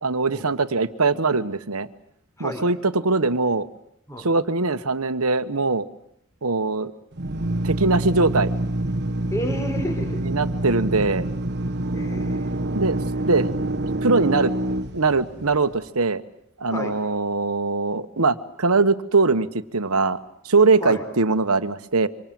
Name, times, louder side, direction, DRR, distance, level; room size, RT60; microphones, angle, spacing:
voice 1, 0.0-1.9 2.4-3.7 4.2-5.9 6.4-6.9 7.6-8.5 10.2-11.3 12.7-13.5 14.0-14.5 14.9-16.2 16.6-20.2 20.4-22.1, right 3 dB, 85° right, 11 dB, 1.3 m, -21 dB
Drill, 7.1-15.8, right 1 dB, 50° right, 1.2 m, -26 dB
voice 2, 9.3-10.2 11.9-12.6 16.7-17.0 20.8-21.0, equal, 15° left, 5 dB, 4.2 m, -31 dB
27.0 x 25.5 x 7.8 m, 0.73 s
head